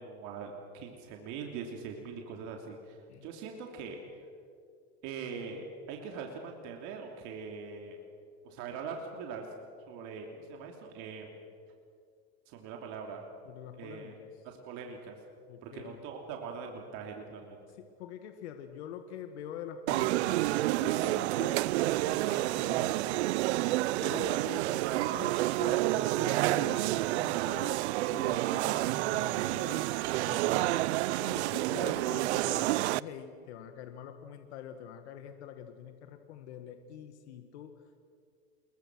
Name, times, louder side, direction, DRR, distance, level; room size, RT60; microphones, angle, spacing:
voice 1, 0.0-4.0 5.0-8.0 8.4-9.5 9.9-11.4 12.5-13.3 13.8-14.1 14.4-15.2 15.6-17.6, right 5 dB, 60° right, 2 dB, 3.1 m, -42 dB
voice 2, 13.5-14.3 15.5-16.0 17.8-23.3 23.9-27.8 28.1-29.9 30.2-30.8 31.2-37.7, left 9 dB, 85° left, 7 dB, 1.8 m, -45 dB
sound 1, 19.9-33.0, right 17 dB, 85° right, 0.6 m, -29 dB
28.5 x 22.0 x 6.3 m, 2.3 s
supercardioid pair, 130°, 33 cm